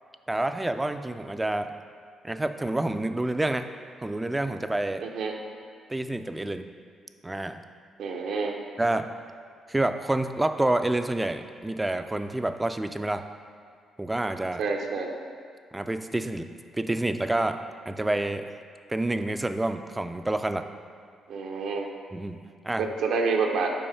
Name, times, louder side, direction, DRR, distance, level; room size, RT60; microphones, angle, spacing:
voice 1, 0.3-1.7 2.2-3.7 4.0-5.0 5.9-6.6 7.2-7.6 8.8-9.1 9.7-13.2 14.0-14.6 15.7-16.5 16.8-17.6 17.9-18.5 18.9-20.6 22.1-22.9, right 1 dB, 10° right, 8 dB, 0.3 m, -28 dB
voice 2, 5.0-5.3 8.0-8.5 14.6-15.1 21.3-21.9 22.8-23.7, right 4 dB, 75° right, 2 dB, 0.7 m, -28 dB
5.5 x 4.5 x 5.6 m, 2.1 s
cardioid pair, 90°, 0 cm